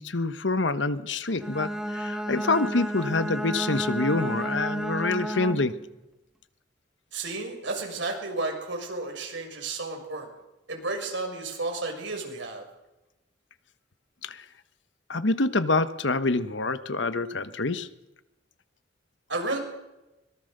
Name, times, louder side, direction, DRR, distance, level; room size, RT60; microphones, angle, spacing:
voice 1, 0.0-5.8 14.2-14.4 15.1-17.9, left 3 dB, 80° left, 13 dB, 1.2 m, -26 dB
Bowed string instrument, 1.3-5.8, right 1 dB, 5° right, 1.6 m, -31 dB
voice 2, 7.1-10.3 10.7-12.6 19.3-19.6, right 3 dB, 80° right, 2 dB, 6.5 m, -32 dB
24.5 x 22.0 x 6.7 m, 0.98 s
head